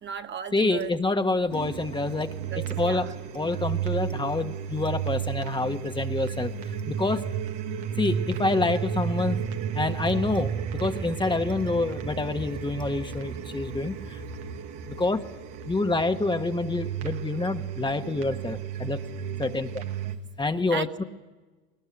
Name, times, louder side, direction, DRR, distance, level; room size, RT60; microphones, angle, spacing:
voice 1, 0.0-0.9 2.5-3.1 19.6-20.2 20.7-21.0, right 7 dB, 40° right, 7 dB, 1.3 m, -37 dB
voice 2, 0.5-3.1 3.3-7.3 8.0-9.4 9.7-14.2 14.9-15.3 15.7-19.0 19.4-19.8 20.4-21.0, left 3 dB, 15° left, 7 dB, 1.4 m, -27 dB
sound 1, 1.5-20.2, right 8 dB, 75° right, 1.9 m, -33 dB
20.5 x 19.0 x 9.8 m, 1.3 s
hypercardioid pair, 75°, 29 cm